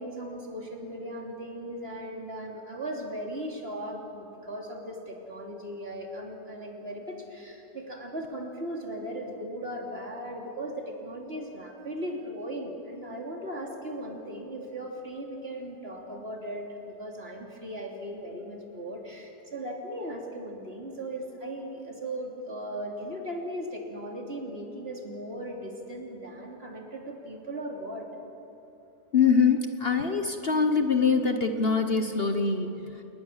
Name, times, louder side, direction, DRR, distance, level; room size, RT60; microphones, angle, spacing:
voice 1, 0.0-28.1, right 1 dB, 40° right, 0 dB, 3.2 m, -37 dB
voice 2, 29.1-33.0, left 5 dB, 40° left, 6 dB, 1.2 m, -24 dB
29.5 x 19.5 x 7.4 m, 3.0 s
omnidirectional pair, 1.7 m